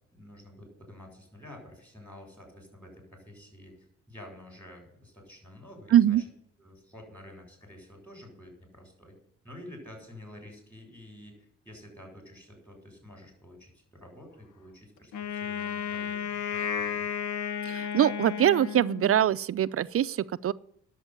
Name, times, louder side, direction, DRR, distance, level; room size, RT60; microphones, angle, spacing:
voice 1, 0.1-6.2 6.6-9.2 9.4-17.1, left 1 dB, 5° left, 2 dB, 7.8 m, -49 dB
voice 2, 5.9-6.2 17.7-20.5, right 11 dB, 50° right, 15 dB, 0.5 m, -23 dB
Wind instrument woodwind instrument, 15.1-19.3, left 8 dB, 85° left, 1.2 m, -33 dB
11.0 x 7.8 x 9.7 m, 0.68 s
cardioid pair, 90°, 30 cm